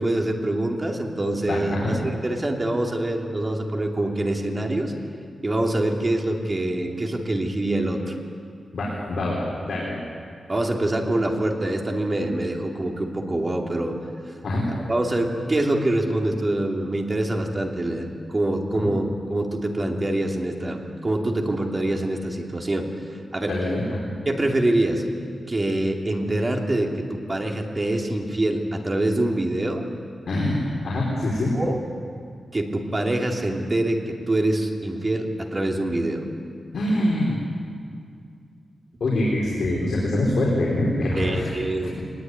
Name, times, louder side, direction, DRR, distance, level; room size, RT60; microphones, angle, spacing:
voice 1, 0.0-4.9 5.4-8.2 10.5-14.0 14.9-22.9 23.3-23.5 24.2-25.0 25.5-29.9 31.5-31.8 32.5-36.3 41.2-42.0, right 1 dB, 25° right, 1 dB, 2.7 m, -25 dB
voice 2, 1.4-2.0 8.7-10.0 14.4-14.7 18.8-18.9 23.5-23.8 30.3-31.6 36.7-37.4 39.0-41.6, left 1 dB, 65° left, -4 dB, 4.9 m, -24 dB
22.5 x 20.0 x 9.6 m, 2.2 s
wide cardioid pair, 150°, 0 cm